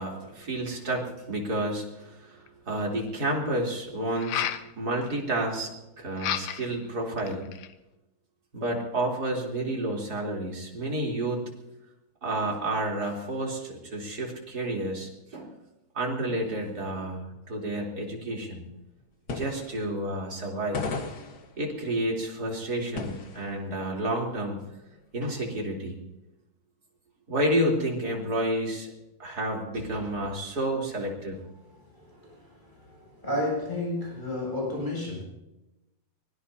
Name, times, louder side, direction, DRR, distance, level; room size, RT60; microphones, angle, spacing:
voice 1, 0.0-4.5 4.8-7.5 8.5-11.4 12.2-15.5 15.9-18.7 19.3-20.8 21.6-24.6 25.1-26.0 27.3-28.9 29.2-31.4, right 1 dB, 25° right, -1 dB, 3.9 m, -30 dB
sound 1, 2.5-2.6 4.1-4.7 6.2-6.8 7.2-7.7, left 11 dB, 75° left, 1.5 m, -31 dB
sound 2, 19.0-19.1 19.3-20.4 20.7-23.7 24.0-24.1 24.7-25.7, left 4 dB, 55° left, 1.1 m, -36 dB
voice 2, 31.9-35.2, left 1 dB, 10° left, -2 dB, 8.2 m, -32 dB
24.0 x 19.5 x 2.8 m, 0.96 s
omnidirectional pair, 4.0 m